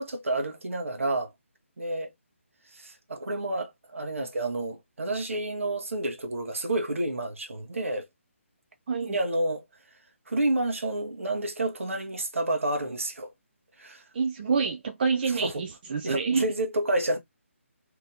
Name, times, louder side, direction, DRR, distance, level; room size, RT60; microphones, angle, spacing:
voice 1, 0.0-1.3 1.8-2.1 2.7-8.1 9.0-9.6 10.3-13.3 13.8-14.0 15.4-15.5 16.0-17.2, right 2 dB, 70° right, 1.1 m, -29 dB
voice 2, 8.9-9.2 14.1-16.4, right 5 dB, 40° right, 0.5 m, -27 dB
2.9 x 2.7 x 3.7 m
figure-of-eight pair, 150°, 7 cm